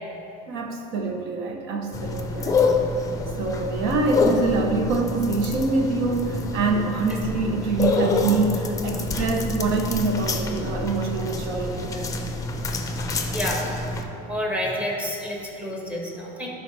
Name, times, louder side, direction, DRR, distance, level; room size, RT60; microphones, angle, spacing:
voice 1, 0.5-2.7 3.4-12.1, right 3 dB, 60° right, 2 dB, 0.8 m, -25 dB
sound 1, 1.9-14.0, left 3 dB, 15° left, 0.6 m, -27 dB
voice 2, 13.3-13.8 14.3-16.5, equal, 5° right, -2 dB, 1.3 m, -29 dB
12.0 x 5.5 x 3.3 m, 2.9 s
cardioid pair, 135°, 21 cm